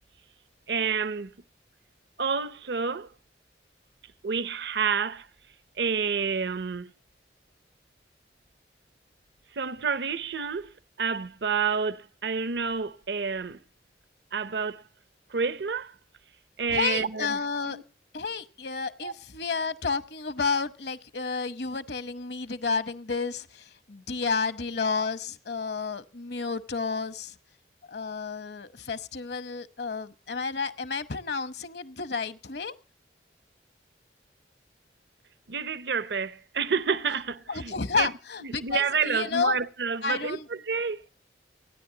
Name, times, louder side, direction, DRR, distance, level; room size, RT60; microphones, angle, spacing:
voice 1, 0.7-1.3 2.2-3.1 4.2-5.3 5.8-6.9 9.5-13.6 14.3-14.8 15.3-15.9 16.6-17.8 19.0-19.1 35.5-38.1 38.4-41.1, right 5 dB, 70° right, 0.7 m, -29 dB
voice 2, 16.7-17.8 18.1-27.3 27.9-32.7 37.5-39.6 40.0-40.4, left 4 dB, 65° left, 1.0 m, -31 dB
30.0 x 10.0 x 2.8 m
head